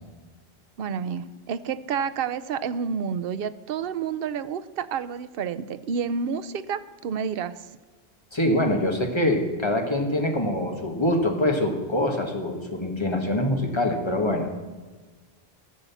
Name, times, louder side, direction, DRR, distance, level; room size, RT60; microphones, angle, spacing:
voice 1, 0.8-7.6, right 6 dB, 65° right, 12 dB, 0.8 m, -29 dB
voice 2, 8.3-14.5, left 1 dB, 25° left, 3 dB, 1.8 m, -24 dB
15.5 x 6.8 x 7.1 m, 1.3 s
omnidirectional pair, 1.1 m